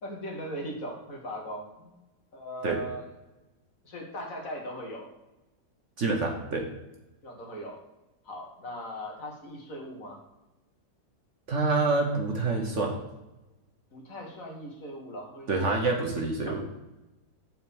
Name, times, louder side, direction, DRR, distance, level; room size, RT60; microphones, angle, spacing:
voice 1, 0.0-2.0 2.3-3.1 3.8-5.1 7.2-7.8 8.2-10.2 13.9-16.6, equal, 55° left, 0 dB, 2.0 m, -39 dB
voice 2, 6.0-6.7 11.5-13.0 15.5-16.6, right 3 dB, 50° right, 2 dB, 1.2 m, -27 dB
7.8 x 4.6 x 7.0 m, 1.0 s
omnidirectional pair, 1.8 m